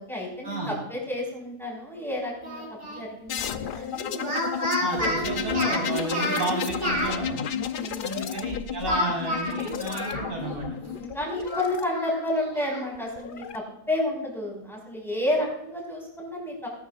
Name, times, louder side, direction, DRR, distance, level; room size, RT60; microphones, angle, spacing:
voice 1, 0.0-4.3 5.0-5.1 7.7-8.1 10.8-16.7, left 1 dB, ahead, -3 dB, 5.1 m, -31 dB
Speech, 2.4-3.0 4.1-7.1 8.8-10.6 10.9-11.0 11.4-12.8, equal, 35° right, 6.0 m, -30 dB
sound 1, 3.3-11.8 13.0-13.6, left 9 dB, 80° left, 0.4 m, -33 dB
voice 2, 4.8-7.4 8.0-10.7 11.5-11.6, right 1 dB, 80° right, -2 dB, 5.0 m, -32 dB
19.5 x 12.5 x 2.4 m, 0.83 s
omnidirectional pair, 1.6 m